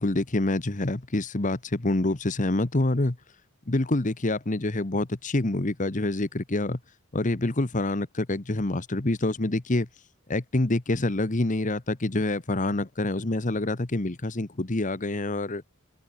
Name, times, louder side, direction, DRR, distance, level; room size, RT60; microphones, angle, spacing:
voice 1, 0.0-3.2 3.7-6.8 7.1-9.9 10.3-15.6, left 2 dB, 35° left, 1.2 m, -26 dB
head